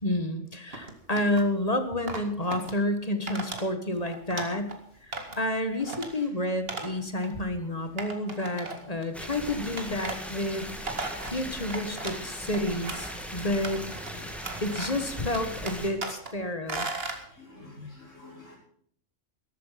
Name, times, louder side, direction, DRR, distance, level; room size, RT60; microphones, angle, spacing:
voice 1, 0.0-4.7 5.0-10.6 11.2-13.8 14.6-16.9, left 1 dB, 30° left, 8 dB, 1.7 m, -30 dB
sound 1, 0.7-1.5 2.1-2.7 3.3-3.6 4.0-4.8 5.1-5.5 5.8-6.1 6.7-6.9 7.2-7.3 8.0-9.0 9.8-10.2 10.6-12.2 12.5-13.2 13.6-14.1 14.4-15.1 15.3-16.3 16.7-17.2, right 3 dB, 50° right, 2.3 m, -36 dB
sound 2, 9.1-15.9, equal, ahead, 2.5 m, -39 dB
voice 2, 14.0-14.6 17.2-18.6, left 2 dB, 75° left, -2 dB, 6.2 m, -49 dB
14.0 x 13.5 x 5.8 m, 0.63 s
omnidirectional pair, 1.3 m